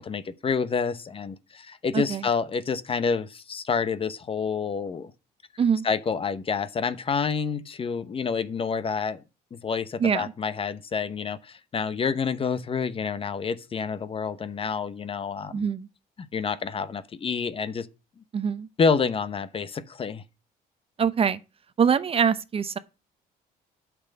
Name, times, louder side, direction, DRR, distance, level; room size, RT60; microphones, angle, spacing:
voice 1, 0.0-5.1 5.8-9.2 9.5-15.7 16.2-17.9 18.8-20.2, left 5 dB, 35° left, 0.9 m, -28 dB
voice 2, 10.0-10.3 15.5-15.9 18.3-18.7 21.0-21.4 21.8-22.8, right 7 dB, 35° right, 0.8 m, -24 dB
8.7 x 6.2 x 6.7 m
cardioid pair, 110°, 17 cm